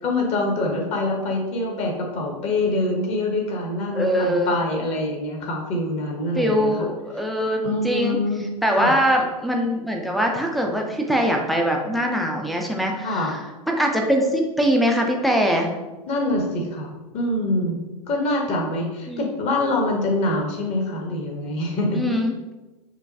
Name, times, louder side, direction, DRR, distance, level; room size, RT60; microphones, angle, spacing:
voice 1, 0.0-6.7 7.6-8.5 8.8-8.9 13.0-13.3 16.1-17.8 18.1-22.0, left 2 dB, 30° left, 0 dB, 0.9 m, -25 dB
voice 2, 3.9-4.5 6.3-8.2 8.6-15.7 19.1-19.3 21.9-22.3, equal, ahead, 1 dB, 0.4 m, -22 dB
5.5 x 2.2 x 2.6 m, 1.1 s
figure-of-eight pair, 100°, 20 cm